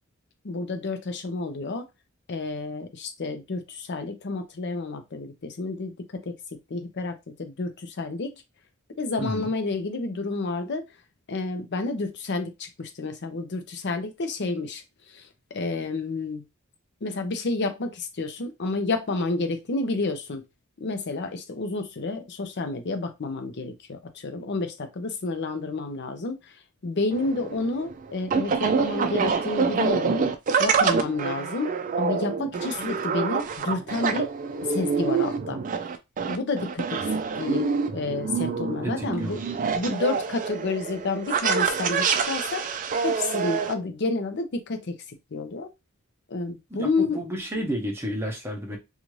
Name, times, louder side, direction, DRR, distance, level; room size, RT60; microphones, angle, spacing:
voice 1, 0.4-1.9 2.3-6.3 6.7-8.4 9.0-10.9 11.3-16.4 17.0-20.5 20.8-26.5 26.8-30.3 30.6-34.3 34.7-35.6 36.3-37.7 37.9-39.4 39.7-42.8 43.0-45.7 46.3-47.2, left 3 dB, 55° left, 0.6 m, -30 dB
sound 1, 27.1-43.7, right 5 dB, 40° right, 0.4 m, -26 dB
voice 2, 38.8-39.4 46.7-48.8, equal, 10° right, 0.8 m, -31 dB
2.6 x 2.4 x 3.0 m
head